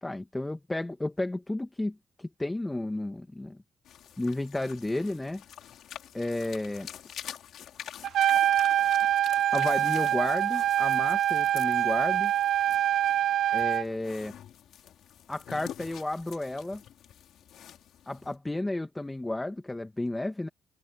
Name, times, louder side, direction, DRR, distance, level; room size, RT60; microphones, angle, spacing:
voice 1, 0.0-3.6 4.2-5.4 6.1-6.9 9.5-12.3 13.5-14.3 15.3-16.8 18.1-20.5, left 2 dB, 15° left, 2.0 m, -32 dB
sound 1, 3.8-18.4, left 10 dB, 75° left, 4.8 m, -47 dB
Trumpet, 8.0-13.8, right 11 dB, 70° right, 0.9 m, -25 dB
open air
cardioid pair, 90°, 0 cm